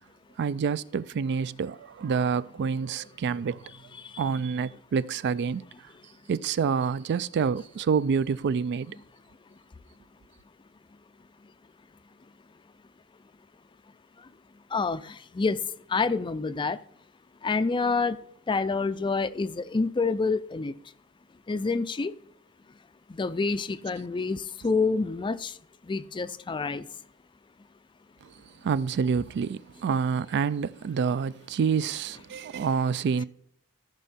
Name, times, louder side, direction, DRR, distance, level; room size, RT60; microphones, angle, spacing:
voice 1, 0.4-3.6 4.2-5.6 6.3-9.0 28.6-33.2, right 6 dB, 50° right, 0.3 m, -27 dB
voice 2, 15.9-16.8 17.4-18.2 18.5-20.7 21.5-22.1 23.1-25.5 25.9-26.8, left 4 dB, 20° left, 0.4 m, -27 dB
13.5 x 5.3 x 4.2 m
head